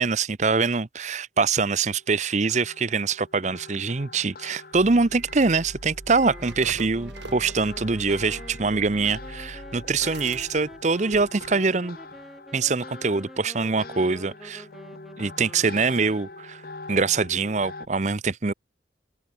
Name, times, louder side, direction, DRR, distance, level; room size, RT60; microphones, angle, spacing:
voice 1, 0.0-12.0 12.5-14.7 15.2-16.6 16.9-18.5, right 4 dB, 40° right, 0.7 m, -24 dB
sound 1, 1.4-17.9, left 3 dB, 55° left, 1.6 m, -44 dB
sound 2, 4.7-11.8 12.1-12.2, right 2 dB, 85° right, 3.5 m, -42 dB
sound 3, 6.2-16.7, equal, ahead, 1.8 m, -47 dB
open air
head